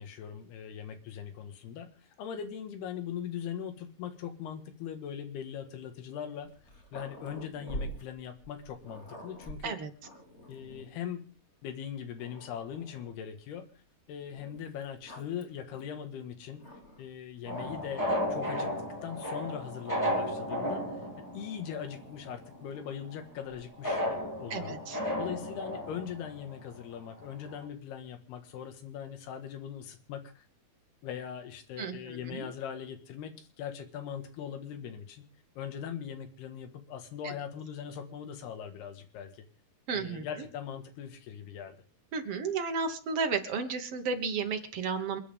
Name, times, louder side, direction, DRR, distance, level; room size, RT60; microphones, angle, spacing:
voice 1, 0.0-1.9 2.2-6.5 6.9-9.8 10.5-11.2 11.6-13.7 14.1-16.6 17.0-18.0 18.3-18.7 19.0-20.8 21.2-24.8 25.2-30.5 31.0-35.2 35.6-39.5 39.9-41.8, left 8 dB, 90° left, 8 dB, 3.7 m, -40 dB
Growling, 6.4-11.0 11.7-11.8 12.2-13.2 14.3-17.1 17.5-18.0 18.9-20.7 21.8-24.4, right 1 dB, 20° left, 2.1 m, -48 dB
sound 1, 17.5-22.1 22.5-22.6 23.8-26.8 27.2-27.3 27.5-27.6, equal, 5° left, 3.2 m, -34 dB
voice 2, 24.5-25.0 31.8-32.5 37.2-37.3 39.9-40.2 42.1-45.2, right 5 dB, 55° right, 6 dB, 1.7 m, -33 dB
28.5 x 9.8 x 3.6 m, 0.37 s
omnidirectional pair, 4.5 m